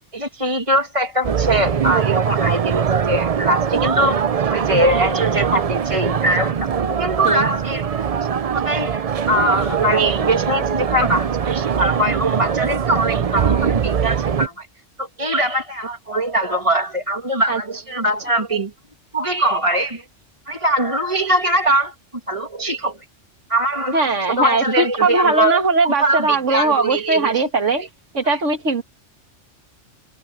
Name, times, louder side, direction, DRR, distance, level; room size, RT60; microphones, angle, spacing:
voice 1, 0.1-4.2 4.5-6.7 7.0-7.9 8.2-8.3 8.6-14.7 15.0-18.7 19.1-20.0 20.5-21.9 22.3-23.0 23.5-27.4 27.8-27.9 28.2-28.4, right 1 dB, 25° right, 2.3 m, -22 dB
sound 1, 1.2-14.5, right 7 dB, 45° right, 0.5 m, -21 dB
voice 2, 23.9-27.8 28.1-28.8, right 3 dB, 70° right, 2.3 m, -19 dB
omnidirectional pair, 1.3 m